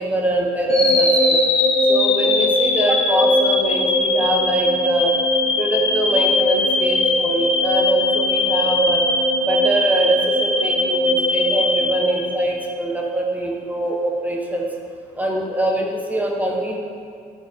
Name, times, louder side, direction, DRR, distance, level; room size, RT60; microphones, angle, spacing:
voice 1, 0.0-1.4 1.9-5.1 5.5-9.0 9.4-14.7 15.2-16.8, right 1 dB, 10° right, -1 dB, 1.3 m, -23 dB
sound 1, 0.7-12.8, left 2 dB, 30° left, 1.2 m, -19 dB
9.1 x 4.4 x 3.8 m, 2.2 s
hypercardioid pair, 50°, 19 cm